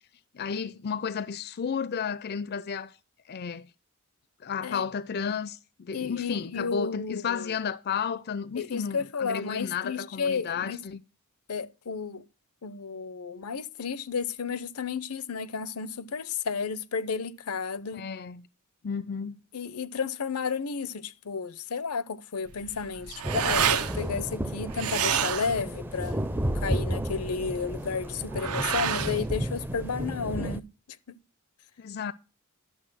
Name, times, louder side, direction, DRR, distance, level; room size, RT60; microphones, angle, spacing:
voice 1, 0.3-2.9 3.3-3.7 4.4-11.0 17.9-18.5 18.8-19.4 31.8-32.1, left 6 dB, 45° left, 0.4 m, -32 dB
voice 2, 5.9-7.5 8.6-10.8 11.5-12.2 12.6-18.1 19.5-30.7, left 5 dB, 85° left, 0.7 m, -32 dB
sound 1, 22.5-30.4, right 8 dB, 85° right, 0.9 m, -31 dB
sound 2, 23.2-30.6, right 1 dB, 10° right, 0.4 m, -33 dB
11.0 x 6.8 x 6.0 m
head